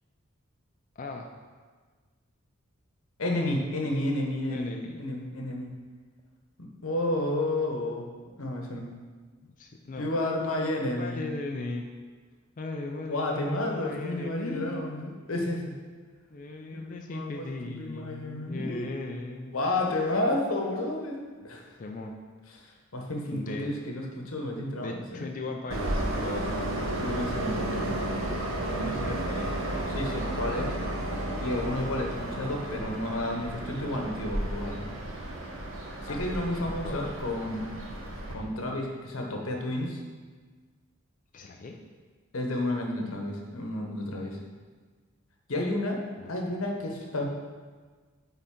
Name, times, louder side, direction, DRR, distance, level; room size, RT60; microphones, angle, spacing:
voice 1, 1.0-1.3 4.5-5.0 9.6-10.1 10.5-10.7 11.0-11.8 12.6-14.9 16.3-19.6 21.8-22.1 23.3-23.7 24.0-24.1 24.8-26.5 28.7-29.5 36.1-36.2 36.6-37.0 41.3-41.8 46.2-46.3, left 2 dB, 40° left, 2 dB, 0.4 m, -37 dB
voice 2, 3.2-4.7 5.0-5.7 6.6-8.0 8.4-8.9 10.0-11.2 13.1-15.6 16.7-16.8 17.1-18.9 19.5-21.7 22.6-25.3 27.0-28.2 29.9-30.8 31.4-34.8 36.0-37.7 38.3-40.0 42.3-44.4 45.5-47.2, left 1 dB, 90° left, 1 dB, 1.0 m, -31 dB
Train, 25.7-38.3, right 1 dB, 70° right, 1.0 m, -33 dB
8.5 x 3.9 x 3.7 m, 1.5 s
head